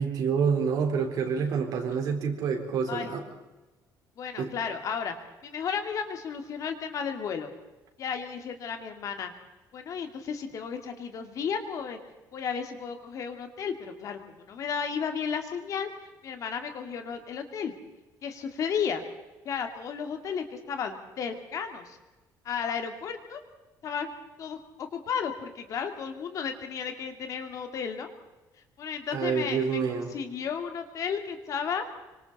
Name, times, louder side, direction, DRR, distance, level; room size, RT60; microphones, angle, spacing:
voice 1, 0.0-3.2 4.4-4.5 29.1-30.1, right 6 dB, 60° right, 3 dB, 4.1 m, -27 dB
voice 2, 4.2-5.1 5.4-7.5 8.0-9.3 9.7-12.0 12.3-14.2 14.5-15.9 16.2-17.7 18.2-19.0 19.4-22.0 22.4-23.4 23.8-24.1 24.4-28.1 28.8-31.8, left 6 dB, 50° left, 6 dB, 2.4 m, -33 dB
25.5 x 25.0 x 4.2 m, 1.1 s
cardioid pair, 155°, 7 cm